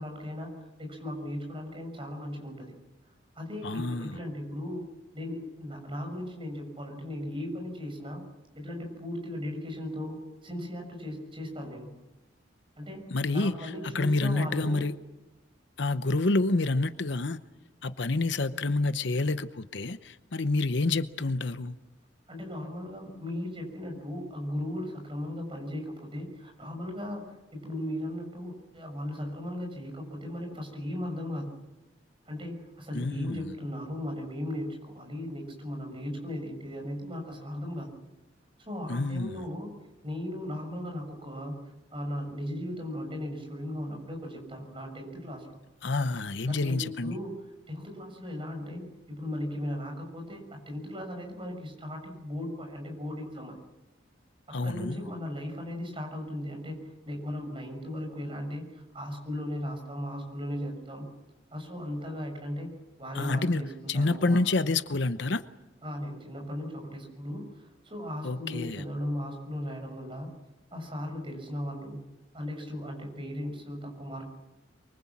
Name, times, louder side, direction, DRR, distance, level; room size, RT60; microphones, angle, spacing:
voice 1, 0.0-2.8 3.3-4.8 5.1-8.2 8.5-11.9 12.8-14.8 22.3-31.5 32.2-37.9 38.6-39.7 40.0-41.6 41.9-45.6 46.5-47.3 47.7-53.6 54.5-61.0 61.5-62.7 63.0-64.4 65.8-70.3 70.7-72.0 72.3-74.2, left 1 dB, 25° right, 3 dB, 6.6 m, -37 dB
voice 2, 3.6-4.2 13.1-14.9 15.8-17.4 17.8-21.8 32.9-33.5 38.9-39.4 45.8-47.2 54.5-55.0 63.1-63.6 63.9-65.4 68.2-68.8, left 2 dB, 65° left, 12 dB, 0.9 m, -28 dB
24.5 x 24.0 x 7.4 m, 1.0 s
head